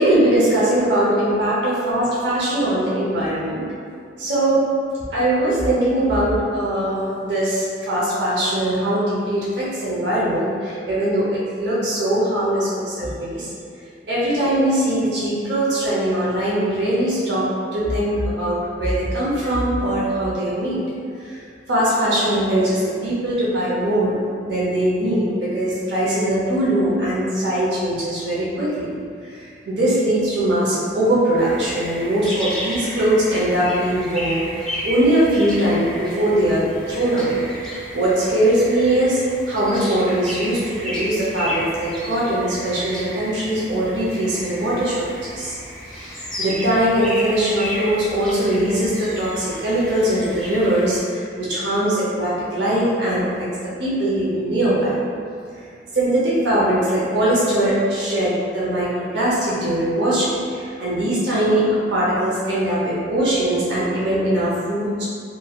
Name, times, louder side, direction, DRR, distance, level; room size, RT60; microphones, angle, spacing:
voice 1, 0.0-3.6 4.2-4.6 5.1-13.5 14.1-20.8 21.2-21.4 21.7-24.2 24.4-28.9 29.3-34.4 34.8-37.4 37.7-39.2 39.5-45.5 45.9-55.0 55.9-65.0, right 1 dB, 80° right, -8 dB, 0.6 m, -21 dB
sound 1, 31.4-51.0, equal, 5° left, 0.4 m, -33 dB
3.0 x 2.5 x 2.2 m, 2.3 s
head